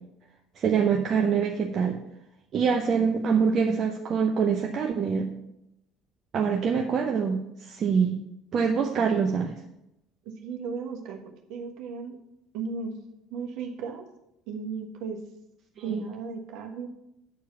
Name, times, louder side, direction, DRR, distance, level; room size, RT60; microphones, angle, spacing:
voice 1, 0.6-2.0 2.5-5.3 6.3-7.4 7.7-8.2 8.5-9.5 15.9-16.0, right 6 dB, 45° right, 2 dB, 0.8 m, -24 dB
voice 2, 10.2-11.2 11.5-12.2 12.5-12.9 13.3-14.0 14.5-15.2 15.8-16.9, right 5 dB, 60° right, 3 dB, 1.3 m, -35 dB
8.5 x 4.7 x 7.2 m, 0.83 s
figure-of-eight pair, 60°, 0 cm